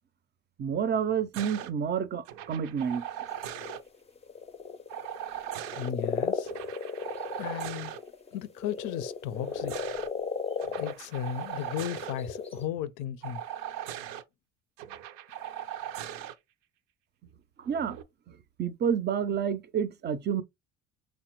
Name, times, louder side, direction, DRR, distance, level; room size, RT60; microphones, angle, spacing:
voice 1, 0.6-3.1 17.6-18.0 18.6-20.4, right 7 dB, 35° right, 0.4 m, -29 dB
sound 1, 1.3-1.7 2.3-3.8 4.9-5.9 6.4-8.0 9.3-10.1 10.6-12.1 13.2-14.2 14.8-16.3 17.6-18.0, right 10 dB, 85° right, 0.5 m, -39 dB
sound 2, 3.3-12.7, left 5 dB, 20° left, 0.4 m, -35 dB
voice 2, 5.7-6.5 7.4-7.9 8.3-9.7 10.8-13.4, left 10 dB, 75° left, 0.5 m, -35 dB
3.3 x 2.1 x 2.9 m
supercardioid pair, 90°, 31 cm